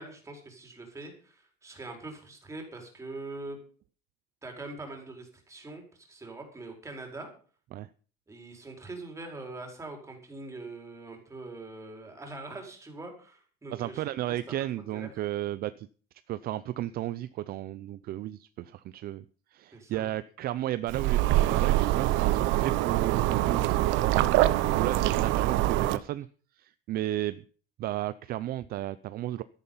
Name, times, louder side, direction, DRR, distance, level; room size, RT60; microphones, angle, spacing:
voice 1, 0.0-3.6 4.4-7.3 8.3-14.4 14.9-15.1 19.7-20.1, right 2 dB, 15° right, 3 dB, 4.9 m, -43 dB
voice 2, 13.7-15.9 16.3-19.2 19.5-24.2 24.4-26.3 26.6-27.4 27.8-29.4, right 14 dB, 45° right, 15 dB, 0.6 m, -34 dB
sound 1, 20.9-26.0, right 15 dB, 65° right, 1.1 m, -24 dB
13.0 x 11.0 x 5.7 m, 0.41 s
cardioid pair, 145°, 21 cm